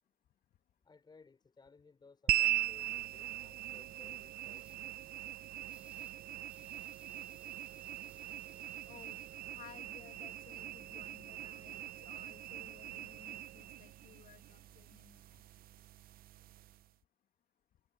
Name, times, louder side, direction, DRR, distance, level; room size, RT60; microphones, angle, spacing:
voice 1, 0.8-4.7, left 4 dB, 25° left, 5.6 m, -61 dB
sound 1, 2.3-16.9, right 14 dB, 60° right, 0.6 m, -40 dB
sound 2, 4.5-4.8 5.6-6.2 6.5-9.4, right 1 dB, 10° right, 1.8 m, -66 dB
Telephone, 7.1-12.1, right 4 dB, 25° right, 7.0 m, -69 dB
voice 2, 8.9-9.2 9.5-15.4, left 11 dB, 60° left, 2.2 m, -58 dB
cardioid pair, 110°, 17 cm